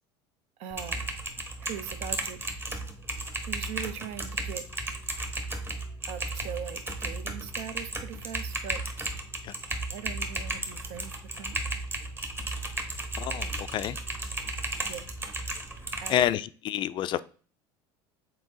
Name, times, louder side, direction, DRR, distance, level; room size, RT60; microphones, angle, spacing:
voice 1, 0.6-1.1 1.6-2.4 3.0-3.1 3.4-4.7 6.1-8.8 9.9-11.6 14.9-15.1 16.0-16.3, right 9 dB, 65° right, 0.7 m, -40 dB
Typing, 0.7-16.2, right 2 dB, 20° right, 1.2 m, -34 dB
voice 2, 13.2-14.0 16.1-17.2, left 11 dB, 40° left, 0.3 m, -28 dB
6.1 x 4.4 x 3.8 m
supercardioid pair, 120°, 12 cm